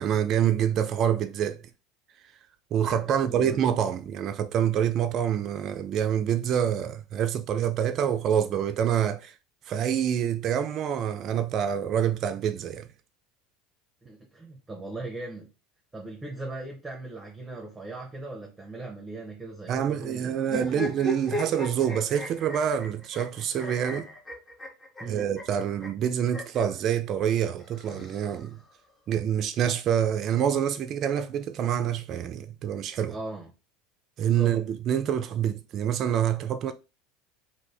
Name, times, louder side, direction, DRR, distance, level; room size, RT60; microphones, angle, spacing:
voice 1, 0.0-1.6 2.7-9.3 9.7-12.9 19.7-24.1 25.1-28.6 29.1-33.2 34.2-36.7, right 9 dB, 50° right, 0.3 m, -26 dB
voice 2, 3.0-3.6 14.0-15.5 15.9-20.7 25.0-25.3 33.1-33.5 34.2-34.6, right 2 dB, 15° right, 0.8 m, -39 dB
sound 1, 20.4-26.6 27.6-28.7, equal, 20° left, 1.1 m, -36 dB
2.5 x 2.5 x 3.3 m
hypercardioid pair, 85°, 0 cm